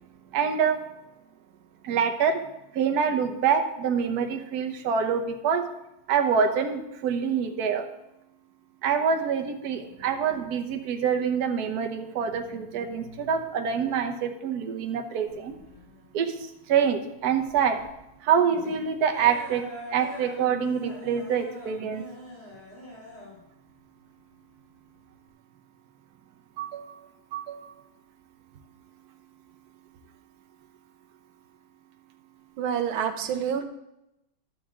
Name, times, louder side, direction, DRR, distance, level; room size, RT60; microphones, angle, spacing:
voice 1, 0.3-0.8 1.8-2.4 2.7-5.7 6.1-7.8 8.8-15.6 16.1-16.3 16.7-17.8 18.2-19.6 19.9-22.0 26.6-26.9 27.3-27.7, right 7 dB, 55° right, 4 dB, 1.3 m, -26 dB
sound 1, 15.3-25.3, left 1 dB, 30° left, 3.1 m, -44 dB
voice 2, 32.6-33.7, right 8 dB, 90° right, 7 dB, 1.7 m, -27 dB
11.5 x 4.9 x 7.4 m, 0.88 s
omnidirectional pair, 2.3 m